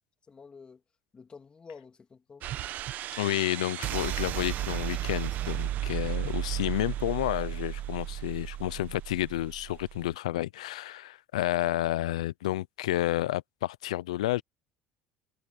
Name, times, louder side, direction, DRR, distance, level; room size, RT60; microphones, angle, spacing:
voice 1, 0.3-0.8 1.1-2.7, left 5 dB, 30° left, 2.8 m, -50 dB
sound 1, 2.4-10.1, right 13 dB, 60° right, 1.3 m, -34 dB
voice 2, 3.2-14.4, left 15 dB, 90° left, 0.6 m, -30 dB
hypercardioid pair, 80°, 3 cm